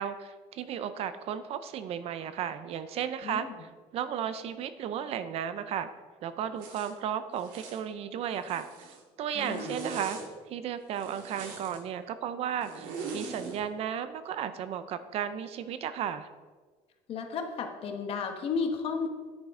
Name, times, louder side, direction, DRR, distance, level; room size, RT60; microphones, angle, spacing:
voice 1, 0.0-5.9 6.2-8.7 9.2-10.2 10.5-16.3, right 9 dB, 50° right, 12 dB, 0.5 m, -34 dB
voice 2, 3.2-3.5 9.3-9.8 17.1-19.1, left 5 dB, 45° left, 5 dB, 1.2 m, -33 dB
Zipper (clothing), 6.6-6.9 7.4-7.8 8.3-9.0 9.3-10.3 10.9-11.8 12.6-13.6, right 4 dB, 85° right, 1.9 m, -41 dB
9.7 x 9.2 x 3.7 m, 1.4 s
cardioid pair, 160°, 13 cm